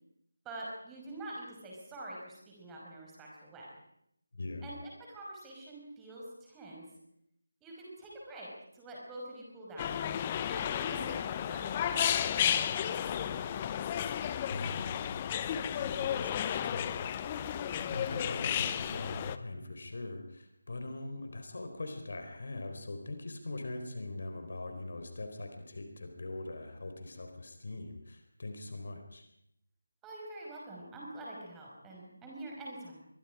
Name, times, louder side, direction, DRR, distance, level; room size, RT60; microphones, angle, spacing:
voice 1, 0.4-3.7 4.6-6.8 7.6-8.5 8.7-10.0 10.5-13.6 30.0-33.1, right 1 dB, 10° right, -3 dB, 5.8 m, -46 dB
voice 2, 4.3-4.7 14.5-15.1 15.6-17.4 17.8-29.2, left 2 dB, 50° left, 5 dB, 4.4 m, -42 dB
sound 1, 9.8-19.4, left 9 dB, 20° left, 0.9 m, -33 dB
25.5 x 23.0 x 5.1 m, 0.75 s
figure-of-eight pair, 160°, 0 cm